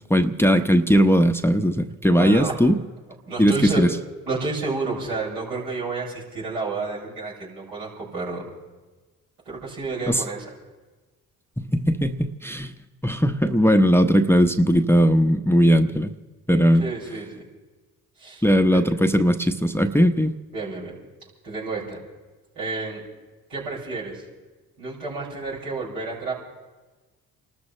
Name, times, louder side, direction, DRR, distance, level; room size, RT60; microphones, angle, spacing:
voice 1, 0.1-2.8 3.4-3.9 10.1-10.2 11.6-12.7 13.0-16.1 16.5-16.8 18.4-20.3, equal, 5° left, 7 dB, 0.9 m, -19 dB
voice 2, 2.1-2.6 3.3-3.8 4.2-8.4 9.4-10.5 16.8-17.5 18.2-18.4 18.7-18.8 20.5-21.0 21.4-22.0 22.5-23.0 23.5-24.2 24.8-26.3, right 3 dB, 80° right, -7 dB, 6.3 m, -30 dB
29.5 x 13.0 x 3.3 m, 1.2 s
hypercardioid pair, 40°, 40 cm